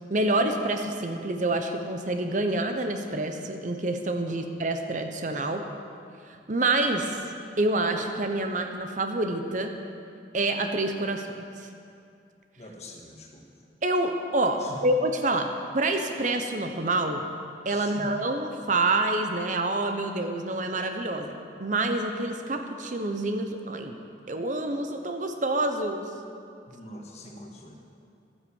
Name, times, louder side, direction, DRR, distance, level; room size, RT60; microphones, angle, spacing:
voice 1, 0.1-5.6 6.5-7.2 7.6-9.7 10.3-11.3 13.8-15.5 15.7-17.3 17.6-21.3 21.6-23.9 24.3-26.1, right 2 dB, 40° right, 5 dB, 0.8 m, -27 dB
voice 2, 12.6-13.5 14.6-14.9 17.7-18.1 26.7-27.8, left 1 dB, 35° left, 0 dB, 1.6 m, -44 dB
13.0 x 9.7 x 7.2 m, 2.5 s
head